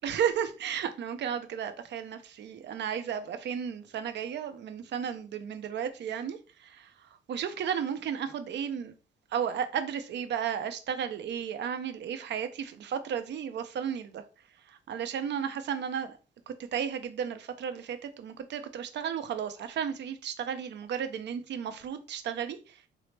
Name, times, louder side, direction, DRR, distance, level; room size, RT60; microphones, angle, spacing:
voice 1, 0.0-8.9 9.3-14.2 14.7-16.1 16.5-22.8, right 8 dB, 60° right, 0.5 m, -34 dB
4.1 x 2.0 x 3.2 m
cardioid pair, 90°, 20 cm